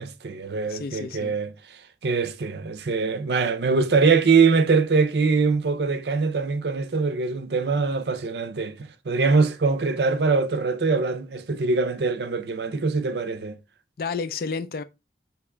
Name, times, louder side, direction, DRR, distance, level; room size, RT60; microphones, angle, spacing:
voice 1, 0.0-13.6, right 4 dB, 65° right, 0.5 m, -23 dB
voice 2, 0.7-1.4 14.0-14.8, left 5 dB, 55° left, 0.4 m, -31 dB
4.7 x 3.0 x 3.3 m
head